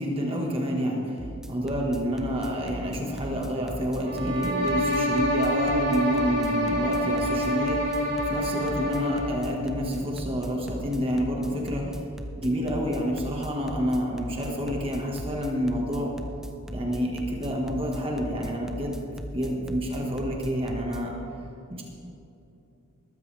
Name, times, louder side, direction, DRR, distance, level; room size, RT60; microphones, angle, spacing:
voice 1, 0.0-12.0 12.4-16.1 16.7-19.0 19.3-21.1 21.7-21.8, equal, 25° right, -1 dB, 1.6 m, -29 dB
sound 1, 1.2-21.0, equal, ahead, 0.6 m, -38 dB
sound 2, 4.0-9.4, equal, 50° right, 3.4 m, -27 dB
20.5 x 13.5 x 3.4 m, 2.7 s
head